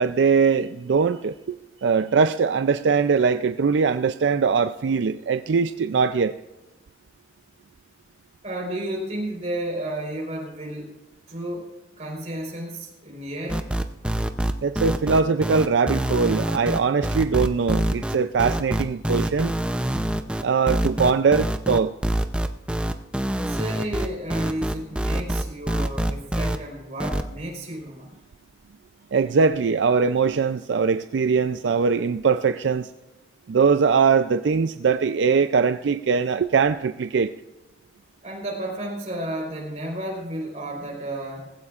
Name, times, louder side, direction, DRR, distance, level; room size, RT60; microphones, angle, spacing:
voice 1, 0.0-1.6 1.8-6.3 14.6-19.5 20.4-21.9 29.1-32.9 33.5-37.3, right 5 dB, 80° right, 0.4 m, -21 dB
voice 2, 8.4-11.0 11.3-13.7 23.4-28.2 38.2-41.5, right 1 dB, 40° right, 4.1 m, -32 dB
sound 1, 13.5-26.6 27.0-27.2, right 1 dB, 5° right, 0.5 m, -25 dB
19.5 x 15.5 x 2.5 m
head